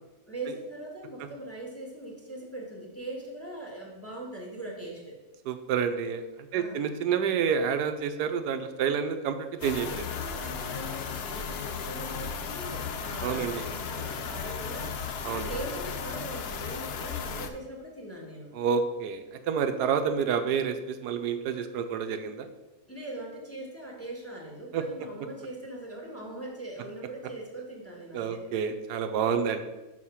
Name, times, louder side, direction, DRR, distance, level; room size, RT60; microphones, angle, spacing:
voice 1, 0.3-5.2 6.5-6.9 9.9-15.0 15.3-18.5 22.9-28.4, right 1 dB, 10° left, -3 dB, 1.4 m, -41 dB
voice 2, 5.5-6.2 6.5-10.1 13.2-13.6 15.2-15.5 18.5-22.5 24.7-24.8 28.1-29.6, right 7 dB, 85° right, 8 dB, 1.2 m, -29 dB
sound 1, 9.6-17.5, left 6 dB, 65° left, 0.6 m, -35 dB
6.4 x 4.7 x 5.6 m, 1.1 s
omnidirectional pair, 1.7 m